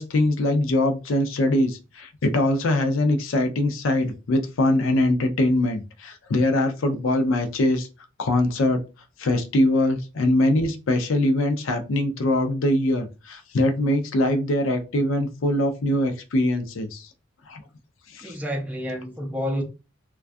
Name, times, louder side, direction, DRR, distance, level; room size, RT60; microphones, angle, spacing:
voice 1, 0.0-7.9 8.2-8.8 9.2-17.1 17.5-17.6 18.1-18.4, left 1 dB, 85° left, 0.5 m, -22 dB
voice 2, 18.2-19.6, equal, 10° right, 0.4 m, -29 dB
2.3 x 2.2 x 2.5 m
head